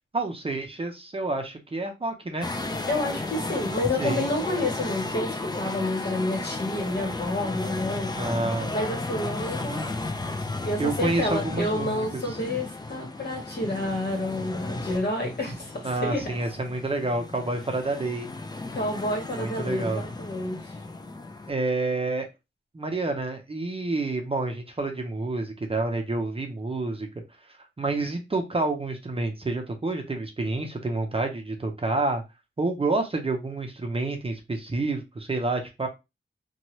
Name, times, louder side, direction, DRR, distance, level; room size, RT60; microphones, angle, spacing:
voice 1, 0.1-2.5 4.0-4.3 8.1-8.7 10.8-12.2 15.8-18.3 19.3-20.0 21.5-22.3 22.7-27.1 27.8-32.2 32.6-35.9, right 2 dB, 30° right, 0.6 m, -28 dB
sound 1, 2.4-21.5, left 2 dB, 20° left, 0.4 m, -34 dB
voice 2, 2.9-8.1 8.7-9.8 10.4-16.3 18.7-20.6, left 1 dB, 55° left, 1.3 m, -29 dB
2.8 x 2.2 x 2.9 m
wide cardioid pair, 95°, 21 cm